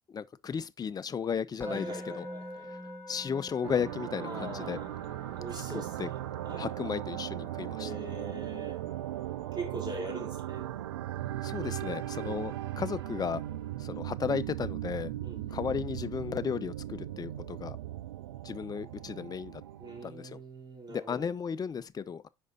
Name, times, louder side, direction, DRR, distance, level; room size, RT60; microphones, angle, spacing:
voice 1, 0.1-2.3 2.6-4.8 6.0-6.1 6.6-7.9 11.4-13.4 13.8-15.1 15.5-17.8 18.4-19.6 20.0-20.4 20.9-22.3, left 7 dB, 30° left, 0.5 m, -34 dB
Musical instrument, 1.6-12.7, left 1 dB, 15° left, 2.3 m, -47 dB
voice 2, 1.7-2.7 4.2-4.9 5.4-6.2 6.4-6.7 7.8-8.8 9.5-10.7 15.2-15.6 19.8-21.3, right 2 dB, 30° right, 3.1 m, -42 dB
sound 1, 3.6-20.1, right 14 dB, 85° right, 0.4 m, -38 dB
5.2 x 5.1 x 3.9 m
hypercardioid pair, 60°, 13 cm